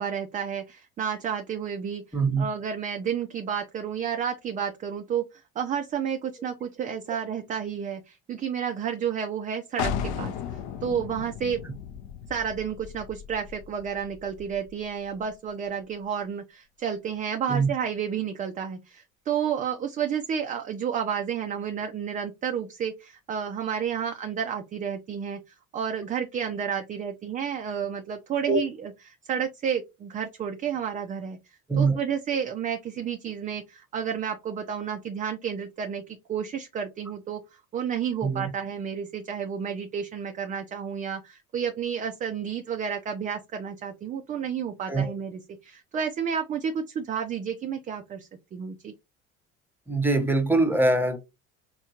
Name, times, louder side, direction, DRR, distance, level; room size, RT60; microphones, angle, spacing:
voice 1, 0.0-2.0 2.4-11.6 12.3-25.4 25.7-37.4 37.7-48.9, right 7 dB, 20° right, 0.3 m, -31 dB
voice 2, 2.1-2.4 17.5-17.7 28.5-28.6 31.7-32.0 38.2-38.5 44.9-45.1 49.9-51.2, right 3 dB, 5° right, 0.8 m, -23 dB
sound 1, 9.8-15.3, left 7 dB, 60° left, 0.6 m, -35 dB
4.3 x 2.3 x 2.8 m
hypercardioid pair, 60°, 42 cm